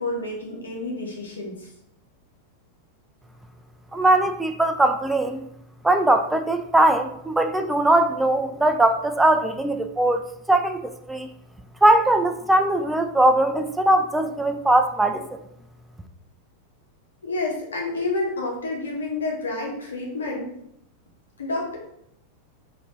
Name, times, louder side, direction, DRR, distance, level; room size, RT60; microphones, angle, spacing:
voice 1, 0.0-1.7 17.2-20.5 21.4-21.8, left 2 dB, 70° left, -1 dB, 1.1 m, -29 dB
voice 2, 3.9-5.5 5.8-11.3 11.8-15.3, right 1 dB, 5° right, 7 dB, 0.4 m, -20 dB
4.2 x 2.7 x 3.1 m, 0.77 s
figure-of-eight pair, 90°, 0 cm